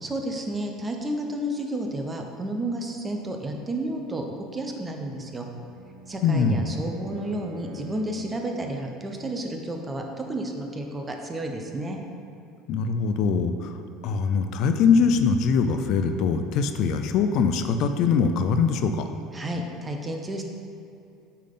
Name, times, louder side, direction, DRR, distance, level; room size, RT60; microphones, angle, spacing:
voice 1, 0.0-4.3 4.5-5.5 6.1-12.0 19.3-20.4, right 1 dB, 20° right, 3 dB, 0.8 m, -31 dB
Bowed string instrument, 5.2-8.4, left 1 dB, 75° right, 0.6 m, -44 dB
voice 2, 6.2-6.7 12.7-13.8 14.0-19.1, left 5 dB, 60° left, 7 dB, 0.4 m, -22 dB
8.3 x 3.7 x 3.8 m, 2.6 s
hypercardioid pair, 85°, 0 cm